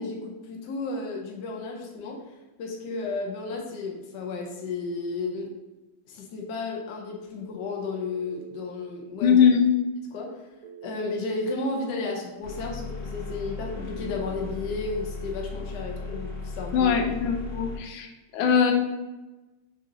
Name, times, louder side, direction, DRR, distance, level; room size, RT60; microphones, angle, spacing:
voice 1, 0.0-2.2 2.6-5.5 6.1-9.4 10.1-10.4 10.8-16.9, left 3 dB, 70° left, 0 dB, 1.2 m, -33 dB
Telephone, 7.7-8.7 10.6-11.7 13.6-14.6, right 7 dB, 65° right, 0.9 m, -44 dB
voice 2, 9.2-9.7 16.7-18.1 18.3-18.7, left 7 dB, 90° left, 3 dB, 1.4 m, -21 dB
sound 1, 12.4-17.8, left 3 dB, 50° left, 1.5 m, -36 dB
5.1 x 2.8 x 2.5 m, 1.1 s
omnidirectional pair, 2.1 m